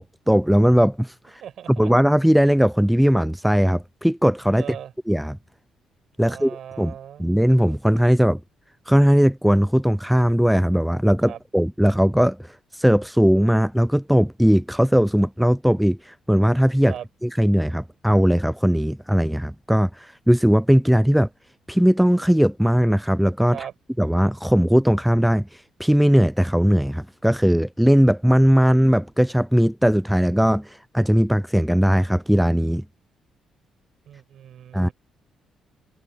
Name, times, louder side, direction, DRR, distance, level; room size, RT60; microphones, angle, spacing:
voice 1, 0.0-1.4 1.8-4.6 5.1-5.4 6.2-6.9 7.2-8.4 8.9-16.9 17.2-21.3 21.7-23.6 24.0-25.5 25.8-32.8 34.7-34.9, equal, ahead, 0.4 m, -19 dB
voice 2, 1.4-1.9 4.6-4.9 6.2-7.2 11.2-11.4 16.9-17.1 23.5-23.7 34.1-34.9, right 10 dB, 70° right, 7.8 m, -38 dB
cardioid pair, 90°, 0 cm